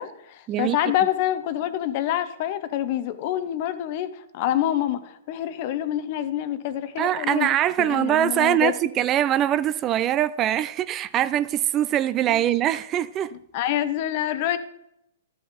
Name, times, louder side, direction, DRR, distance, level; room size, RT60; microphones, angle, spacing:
voice 1, 0.0-7.5 7.8-8.7 12.3-12.4 13.5-14.6, left 12 dB, 50° left, 0.7 m, -26 dB
voice 2, 7.0-13.3, right 11 dB, 30° right, 0.3 m, -23 dB
12.5 x 6.2 x 3.5 m
hypercardioid pair, 120°, 0 cm